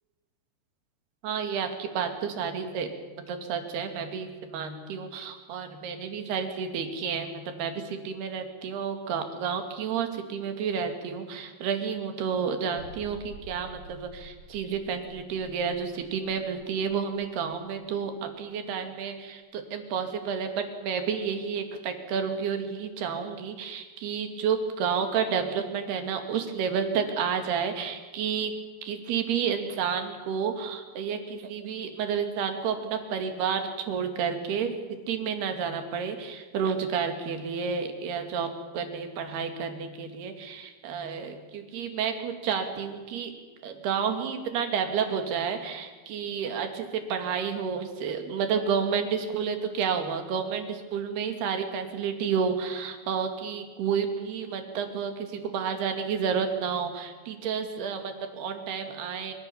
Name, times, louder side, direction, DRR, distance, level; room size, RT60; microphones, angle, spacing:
voice 1, 1.2-2.9 3.3-28.5 28.8-34.7 35.1-43.3 43.6-59.3, right 6 dB, 60° right, 6 dB, 4.0 m, -30 dB
sound 1, 12.8-18.2 18.5-18.6 19.1-19.2, left 1 dB, 35° left, 3.9 m, -49 dB
25.5 x 25.0 x 7.2 m, 1.3 s
omnidirectional pair, 5.7 m